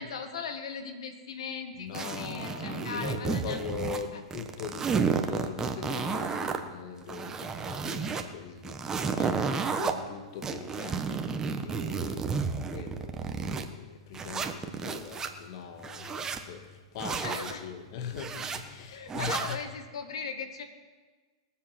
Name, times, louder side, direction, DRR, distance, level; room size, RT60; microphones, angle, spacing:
voice 1, 0.0-3.6 4.1-4.2 17.2-17.7 18.9-20.6, left 5 dB, 75° left, 6 dB, 1.8 m, -38 dB
voice 2, 1.8-19.6, left 7 dB, 55° left, 6 dB, 1.6 m, -41 dB
sound 1, 1.9-4.0 4.3-6.6 7.0-8.2 8.6-9.9 10.4-13.7 14.1-15.3 15.8-16.4 17.0-17.5 18.1-18.6 19.1-19.6, right 5 dB, 20° right, 1.1 m, -32 dB
21.0 x 7.5 x 6.0 m, 1.4 s
hypercardioid pair, 115°, 3 cm